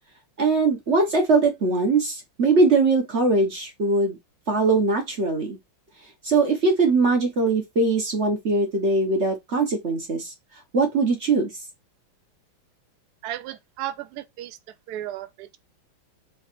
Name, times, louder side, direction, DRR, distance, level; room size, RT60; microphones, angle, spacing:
voice 1, 0.4-4.2 4.5-5.6 6.2-10.3 10.7-11.5, right 3 dB, 50° right, 0.8 m, -21 dB
voice 2, 13.2-14.6 14.9-15.6, right 12 dB, 80° right, 0.8 m, -34 dB
3.3 x 3.1 x 4.3 m
omnidirectional pair, 2.3 m